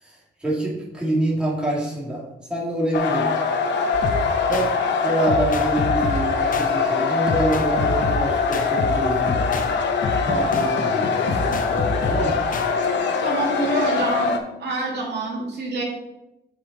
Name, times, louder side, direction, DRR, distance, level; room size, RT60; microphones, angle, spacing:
voice 1, 0.0-2.2 2.5-3.4 4.5-4.7 5.0-9.7 10.2-12.4, right 1 dB, 5° right, -5 dB, 2.3 m, -26 dB
sound 1, 2.9-14.4, left 5 dB, 90° left, 0.9 m, -23 dB
sound 2, 3.9-4.7 5.3-6.7 7.3-9.7 10.0-12.7, left 3 dB, 50° left, 0.8 m, -28 dB
voice 2, 13.2-14.3 14.6-15.8, right 2 dB, 70° right, -3 dB, 2.4 m, -26 dB
7.7 x 5.2 x 4.1 m, 0.91 s
cardioid pair, 110°, 18 cm